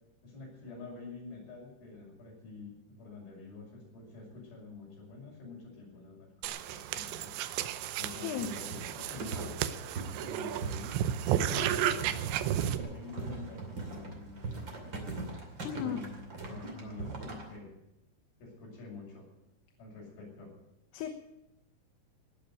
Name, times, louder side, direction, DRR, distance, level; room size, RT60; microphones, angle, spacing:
voice 1, 0.2-7.3 8.0-9.5 10.2-11.0 11.3-15.2 15.8-17.7 18.4-19.3 19.8-20.5, left 3 dB, 60° left, -3 dB, 7.9 m, -47 dB
sound 1, 6.4-12.8, right 11 dB, 90° right, 3.0 m, -33 dB
sound 2, 8.4-17.6, right 3 dB, 35° right, 2.6 m, -41 dB
voice 2, 15.6-16.0 20.9-21.1, left 9 dB, 75° left, 5 dB, 3.0 m, -34 dB
18.5 x 6.9 x 9.6 m, 0.87 s
omnidirectional pair, 4.9 m